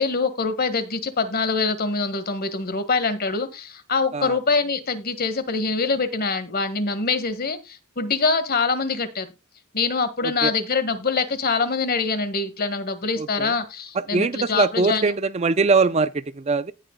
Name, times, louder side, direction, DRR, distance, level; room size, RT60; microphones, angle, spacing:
voice 1, 0.0-9.3 9.7-15.0, left 4 dB, 45° left, 1.6 m, -24 dB
voice 2, 13.2-13.5 14.1-16.7, right 4 dB, 30° right, 0.4 m, -22 dB
18.0 x 6.4 x 2.2 m
head